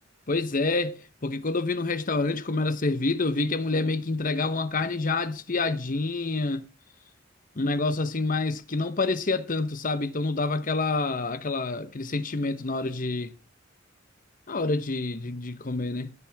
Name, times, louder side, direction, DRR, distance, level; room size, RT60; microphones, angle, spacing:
voice 1, 0.3-6.7 7.6-13.3 14.5-16.1, left 3 dB, 45° left, 1.0 m, -27 dB
20.5 x 7.6 x 3.5 m
head